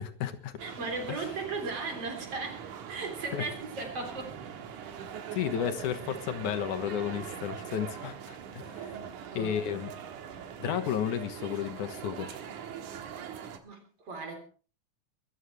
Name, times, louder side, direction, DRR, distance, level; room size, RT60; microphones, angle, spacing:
voice 1, 0.0-0.5 1.1-1.2 3.3-3.4 5.3-9.0 9.3-9.9 10.6-12.4, left 9 dB, 85° left, 2.9 m, -33 dB
voice 2, 0.6-4.4 8.9-9.8 12.8-13.0 13.6-14.4, right 3 dB, 50° right, 4.4 m, -37 dB
sound 1, 0.6-13.6, right 8 dB, 80° right, 2.9 m, -42 dB
23.0 x 14.0 x 3.3 m
omnidirectional pair, 3.4 m